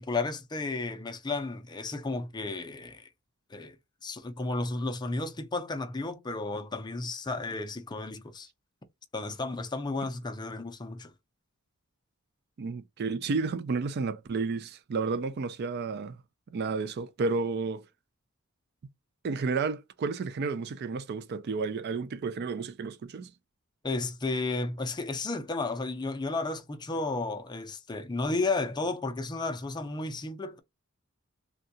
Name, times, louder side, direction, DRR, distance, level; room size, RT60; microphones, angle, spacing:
voice 1, 0.0-3.1 3.5-3.8 4.0-8.5 9.1-11.1 23.8-30.6, left 3 dB, 20° left, 0.5 m, -33 dB
voice 2, 12.6-16.2 16.5-17.9 19.2-23.3, right 4 dB, 50° right, 0.4 m, -31 dB
3.6 x 2.2 x 2.6 m
head